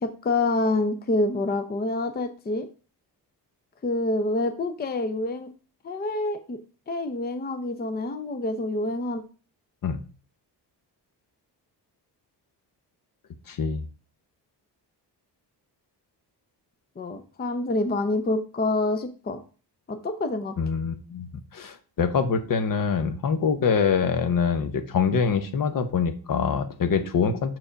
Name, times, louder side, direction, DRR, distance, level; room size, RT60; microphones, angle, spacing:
voice 1, 0.0-2.7 3.8-5.5 5.8-6.6 6.9-9.2 17.0-19.4 19.9-20.5, left 2 dB, 25° left, 8 dB, 0.6 m, -27 dB
voice 2, 13.5-13.8 20.6-21.3 21.5-27.6, left 6 dB, 50° left, 10 dB, 0.9 m, -24 dB
5.7 x 4.8 x 5.1 m, 0.37 s
cardioid pair, 115°, 41 cm